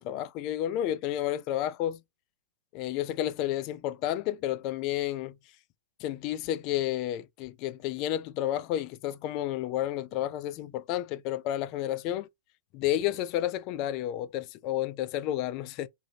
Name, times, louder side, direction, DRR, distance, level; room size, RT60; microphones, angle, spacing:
voice 1, 0.0-2.0 2.7-5.3 6.0-12.3 12.7-15.9, left 12 dB, 40° left, 0.3 m, -31 dB
2.6 x 2.5 x 2.8 m
hypercardioid pair, 110°, 0 cm